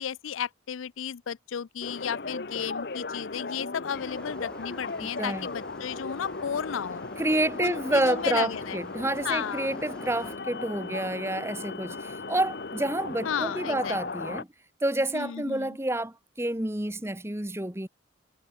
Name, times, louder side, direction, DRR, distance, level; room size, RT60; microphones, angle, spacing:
voice 1, 0.0-7.1 7.6-8.8 9.2-9.7 13.2-14.0 15.1-15.8, left 8 dB, 90° left, 0.5 m, -33 dB
sound 1, 1.8-14.4, left 3 dB, 55° left, 0.9 m, -37 dB
sound 2, 3.9-10.4, equal, 5° left, 2.3 m, -49 dB
voice 2, 5.0-5.5 7.2-14.5 14.8-17.9, right 1 dB, 15° right, 1.3 m, -29 dB
head